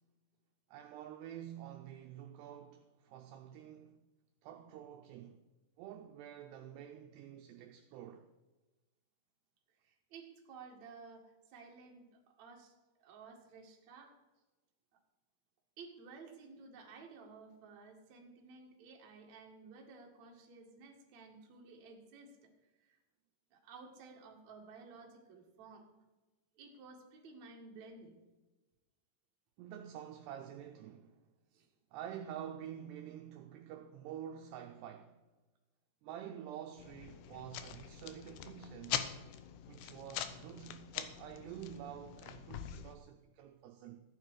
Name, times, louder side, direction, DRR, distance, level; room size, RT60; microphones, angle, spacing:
voice 1, 0.7-4.0 4.4-5.4 5.8-8.3 29.6-31.1 31.9-35.2 36.0-39.0 39.7-44.0, right 10 dB, 80° right, 2.5 m, -48 dB
voice 2, 9.8-12.7 13.0-14.2 15.8-22.5 22.8-23.0 23.5-26.0 26.6-28.2 31.5-31.7, right 4 dB, 50° right, 2.5 m, -54 dB
sound 1, 36.8-43.0, left 10 dB, 80° left, 2.6 m, -43 dB
14.0 x 9.9 x 4.8 m
omnidirectional pair, 5.4 m